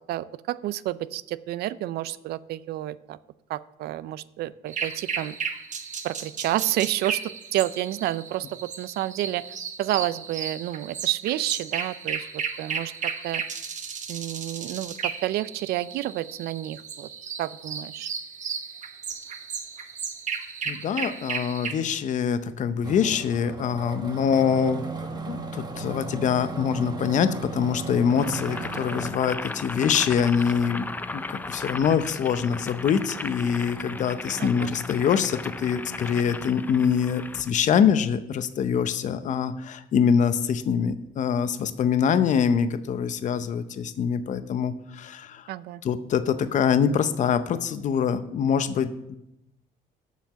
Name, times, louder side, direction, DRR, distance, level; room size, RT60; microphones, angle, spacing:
voice 1, 0.1-3.2 3.5-5.3 6.0-7.2 7.5-9.4 9.8-13.4 14.1-17.1 17.4-18.1 34.4-34.7 45.5-45.8, right 14 dB, 70° right, 17 dB, 0.4 m, -30 dB
sound 1, 4.7-21.7, right 6 dB, 45° right, 1.1 m, -34 dB
voice 2, 20.7-24.9 25.3-30.9 31.1-45.5 45.8-49.2, left 7 dB, 45° left, 11 dB, 0.6 m, -24 dB
sound 2, 22.8-29.1, right 3 dB, 25° right, 1.1 m, -36 dB
Boiling, 28.1-37.5, left 2 dB, 10° left, 0.4 m, -36 dB
7.3 x 5.7 x 7.4 m, 0.86 s
cardioid pair, 110°, 17 cm